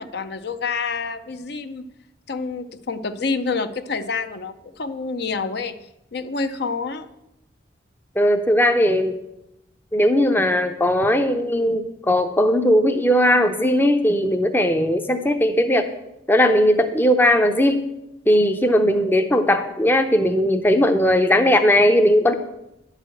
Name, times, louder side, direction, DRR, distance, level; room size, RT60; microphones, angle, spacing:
voice 1, 0.0-1.8 2.3-5.8 6.1-7.1, left 4 dB, 55° left, 10 dB, 0.6 m, -28 dB
voice 2, 8.2-9.2 9.9-15.9 16.3-17.8 18.3-22.3, equal, 10° left, 7 dB, 0.6 m, -18 dB
11.0 x 4.9 x 7.7 m, 0.87 s
head